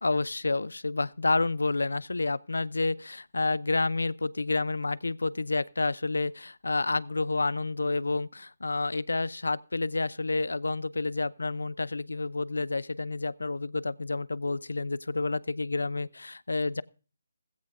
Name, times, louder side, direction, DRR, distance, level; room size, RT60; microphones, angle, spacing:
voice 1, 0.0-16.8, left 3 dB, 75° left, 0.6 m, -29 dB
16.0 x 16.0 x 2.6 m
figure-of-eight pair, 150°, 0 cm